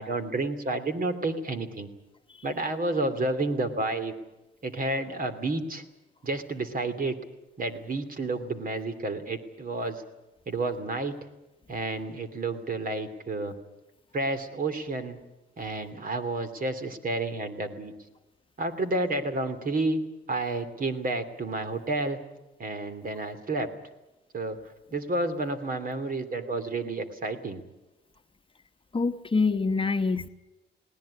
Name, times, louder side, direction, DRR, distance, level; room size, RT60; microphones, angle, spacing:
voice 1, 0.0-1.9 2.4-4.1 4.6-5.8 6.2-7.2 7.6-10.0 10.5-11.1 11.7-13.5 14.1-15.2 15.6-17.9 18.6-20.0 20.3-22.2 22.6-23.7 24.3-24.6 24.9-27.6, right 2 dB, 45° right, 10 dB, 2.8 m, -30 dB
voice 2, 28.9-30.3, left 4 dB, 25° left, 7 dB, 1.1 m, -25 dB
20.5 x 18.0 x 9.9 m, 1.0 s
cardioid pair, 90°, 20 cm